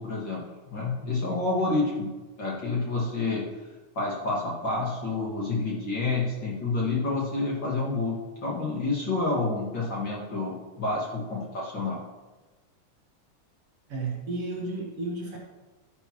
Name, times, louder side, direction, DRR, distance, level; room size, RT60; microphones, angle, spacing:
voice 1, 0.0-2.1 2.4-3.5 3.9-12.0, left 3 dB, 40° left, -4 dB, 2.4 m, -29 dB
voice 2, 13.9-15.4, right 3 dB, 55° right, -2 dB, 2.1 m, -32 dB
11.5 x 11.0 x 3.1 m, 1.2 s
omnidirectional pair, 3.5 m